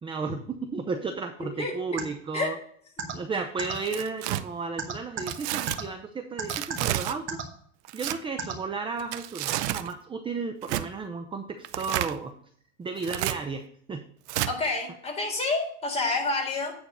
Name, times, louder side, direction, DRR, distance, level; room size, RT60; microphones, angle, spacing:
voice 1, 0.0-2.5 3.1-7.4 7.9-12.3 12.8-14.0, right 4 dB, 15° right, 7 dB, 0.6 m, -33 dB
voice 2, 1.4-2.0 2.3-2.6 3.0-3.1 14.5-16.7, left 3 dB, 15° left, -2 dB, 3.8 m, -29 dB
sound 1, 2.0-2.1 3.0-3.1 3.6-3.7 4.8-5.3 5.7-5.8 6.4-6.8 7.3-7.4 8.4-8.5, right 7 dB, 35° right, 1.9 m, -31 dB
Tearing, 3.7-4.4 5.3-5.8 6.5-7.2 7.8-8.2 9.0-9.9 10.6-10.9 11.6-12.2 13.0-13.4 14.3-14.5, right 14 dB, 65° right, 0.7 m, -30 dB
9.0 x 4.3 x 6.5 m, 0.62 s
hypercardioid pair, 105°, 36 cm